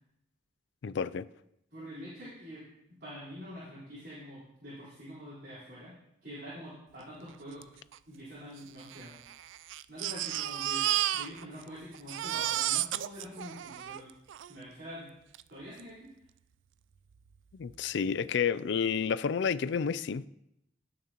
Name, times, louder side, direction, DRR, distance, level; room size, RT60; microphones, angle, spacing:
voice 1, 0.8-1.3 17.6-20.3, left 6 dB, 65° left, 0.4 m, -30 dB
voice 2, 1.7-2.6 3.0-7.6 8.1-9.1 9.9-10.9 11.1-14.1 14.5-15.1 15.5-16.1, equal, 55° right, 4.1 m, -45 dB
Crying sobbing, 7.6-7.7 7.9-8.0 8.8-11.7 11.9-14.5 15.3-15.4 15.8-15.9, right 13 dB, 75° right, 0.3 m, -33 dB
17.5 x 6.5 x 3.0 m
head